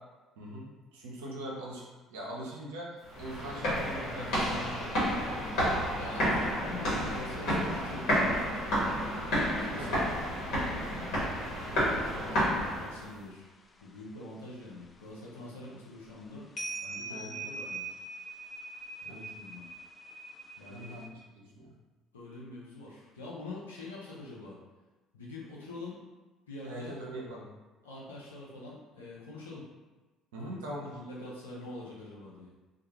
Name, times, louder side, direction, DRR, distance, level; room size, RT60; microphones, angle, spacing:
voice 1, 0.4-1.8 2.1-5.0 9.7-9.9 11.0-11.4 17.1-17.5 19.1-19.3 20.7-21.7 26.6-27.5 30.3-31.0, right 1 dB, 80° right, -4 dB, 0.6 m, -42 dB
sound 1, 3.1-13.1, equal, 65° left, 1.2 m, -30 dB
sound 2, 5.1-11.2 11.6-13.2 13.6-14.9 15.6-15.7 16.0-21.1, right 3 dB, 30° left, 0.3 m, -45 dB
voice 2, 5.9-8.7 9.6-10.1 10.8-11.2 11.6-13.4 13.8-16.4 16.8-17.8 19.0-19.7 20.6-21.0 22.1-24.6 25.1-26.0 26.5-26.9 27.8-29.7 30.4-30.5 30.8-32.5, left 2 dB, 90° left, -6 dB, 0.6 m, -45 dB
2.3 x 2.2 x 2.9 m, 1.2 s
hypercardioid pair, 55°, 0 cm